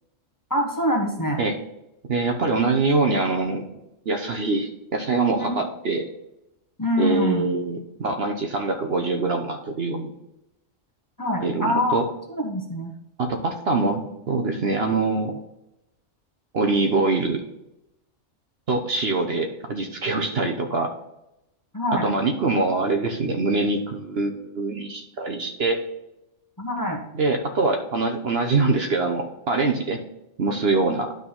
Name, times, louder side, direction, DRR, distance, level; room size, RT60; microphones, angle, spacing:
voice 1, 0.5-1.4 5.4-5.5 6.8-7.5 11.2-12.0 12.3-12.9 21.7-22.1 26.6-27.0, left 1 dB, 15° left, -1 dB, 1.2 m, -24 dB
voice 2, 2.1-3.7 4.1-6.0 7.0-10.1 11.4-12.1 13.2-15.3 16.5-17.4 18.7-20.9 22.0-25.8 27.1-30.0 30.4-31.1, right 3 dB, 55° right, 4 dB, 1.1 m, -24 dB
11.5 x 4.0 x 3.8 m, 0.88 s
omnidirectional pair, 1.3 m